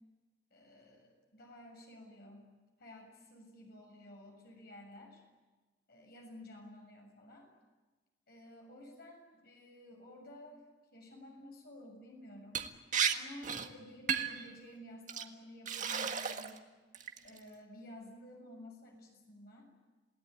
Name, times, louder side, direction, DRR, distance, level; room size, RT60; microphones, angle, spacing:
voice 1, 0.5-2.4 2.8-5.2 5.9-7.5 8.3-10.6 10.9-12.7 13.1-16.6 17.2-19.6, left 1 dB, 60° left, 1 dB, 7.0 m, -53 dB
Liquid, 12.5-12.7 12.9-13.1 13.4-13.7 14.1-14.4 15.1-15.2 15.7-16.6 16.9-17.4, right 7 dB, 45° right, 1.7 m, -33 dB
28.5 x 18.0 x 9.5 m, 1.3 s
head